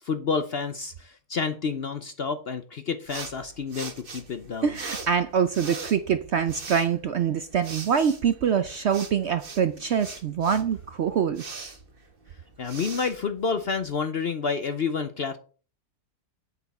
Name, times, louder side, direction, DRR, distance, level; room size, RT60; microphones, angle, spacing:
voice 1, 0.0-4.7 12.6-15.4, left 5 dB, 55° left, 0.7 m, -29 dB
sound 1, 3.0-14.0, right 4 dB, 35° right, 1.4 m, -42 dB
voice 2, 4.6-11.4, right 7 dB, 60° right, 0.7 m, -25 dB
9.4 x 8.2 x 4.2 m
omnidirectional pair, 1.7 m